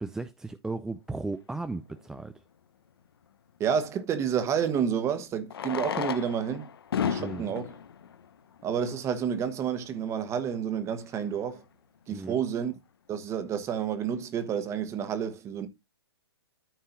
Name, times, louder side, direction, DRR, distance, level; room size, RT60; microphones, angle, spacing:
voice 1, 0.0-2.3 7.2-7.5 12.1-12.4, right 3 dB, 5° right, 0.4 m, -35 dB
Fireworks, 1.9-2.0 4.3-4.4 5.4-9.2 10.0-10.1 10.2-10.3 10.5-10.7 11.2-11.4, left 8 dB, 65° left, 0.9 m, -34 dB
voice 2, 3.6-6.7 7.0-7.7 8.6-11.6 12.1-12.7 13.1-15.7, right 8 dB, 20° right, 1.3 m, -30 dB
13.5 x 5.4 x 2.6 m
figure-of-eight pair, 120°, 14 cm